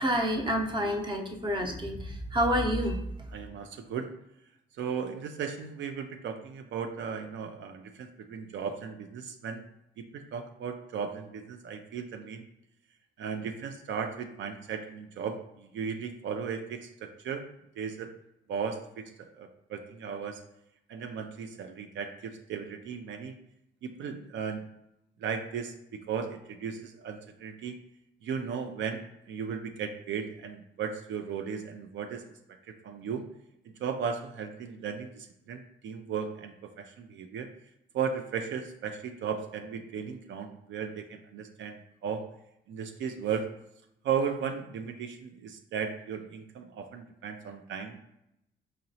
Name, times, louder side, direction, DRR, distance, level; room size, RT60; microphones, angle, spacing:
voice 1, 0.0-2.0 2.3-3.0, equal, 25° right, 3 dB, 0.7 m, -28 dB
voice 2, 3.3-4.1 4.8-9.6 10.0-12.4 13.2-17.4 17.8-18.1 18.5-20.4 20.9-23.3 23.8-24.6 25.2-27.8 28.2-32.2 32.7-33.2 33.7-37.5 37.9-42.3 42.7-43.5 44.0-48.0, right 6 dB, 70° right, 6 dB, 0.4 m, -36 dB
5.0 x 2.8 x 2.7 m, 0.82 s
cardioid pair, 90°, 20 cm